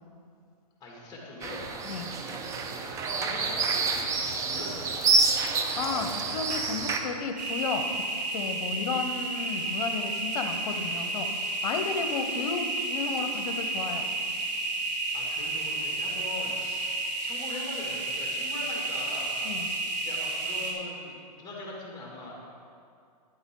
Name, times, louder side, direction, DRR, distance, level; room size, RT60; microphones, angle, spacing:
voice 1, 0.8-1.7 3.0-5.1 15.1-19.4 20.0-22.3, left 2 dB, 20° left, -3 dB, 2.3 m, -41 dB
sound 1, 1.4-7.0, right 3 dB, 15° right, 0.5 m, -28 dB
voice 2, 5.8-8.0 8.3-11.3 11.6-14.1 19.4-19.7, left 5 dB, 60° left, 6 dB, 1.0 m, -33 dB
sound 2, 7.4-20.7, right 2 dB, 75° right, 1.8 m, -31 dB
11.0 x 7.9 x 3.9 m, 2.3 s
hypercardioid pair, 140°, 21 cm